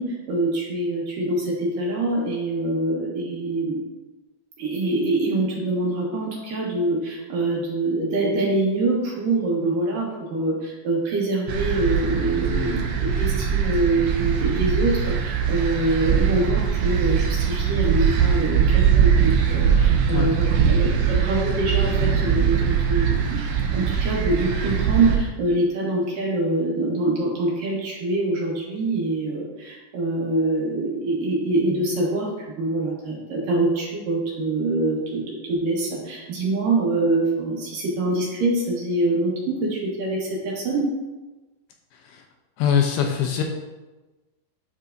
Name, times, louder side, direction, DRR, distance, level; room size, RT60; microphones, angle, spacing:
voice 1, 0.0-3.8 4.6-23.4 23.7-32.3 32.6-40.9, right 2 dB, 65° right, -4 dB, 2.6 m, -25 dB
sound 1, 11.5-25.2, right 7 dB, 80° right, 1.8 m, -21 dB
voice 2, 42.6-43.4, left 8 dB, 80° left, 2 dB, 2.4 m, -22 dB
10.5 x 5.5 x 2.6 m, 1.1 s
omnidirectional pair, 4.8 m